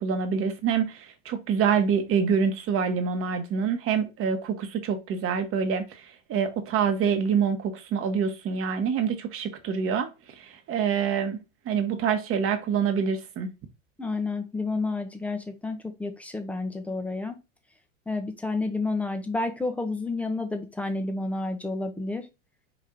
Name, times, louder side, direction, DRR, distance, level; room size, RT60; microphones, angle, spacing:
voice 1, 0.0-5.8 6.3-10.1 10.4-11.4 11.7-13.5, right 6 dB, 35° right, 1.1 m, -26 dB
voice 2, 14.0-17.4 18.1-22.3, left 3 dB, 5° left, 0.6 m, -30 dB
5.0 x 2.7 x 3.5 m
hypercardioid pair, 110°, 40 cm